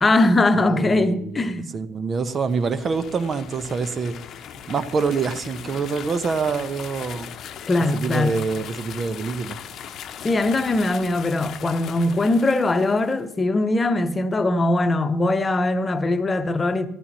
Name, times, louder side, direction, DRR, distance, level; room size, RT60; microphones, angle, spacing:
voice 1, 0.0-1.7 7.7-8.4 10.2-16.9, left 2 dB, 25° left, 1.1 m, -21 dB
voice 2, 0.6-4.2 4.7-7.3 7.9-9.6, right 5 dB, 35° right, 1.0 m, -26 dB
sound 1, 2.4-13.2, left 8 dB, 50° left, 0.9 m, -39 dB
15.0 x 14.0 x 3.0 m
hypercardioid pair, 60°, 0 cm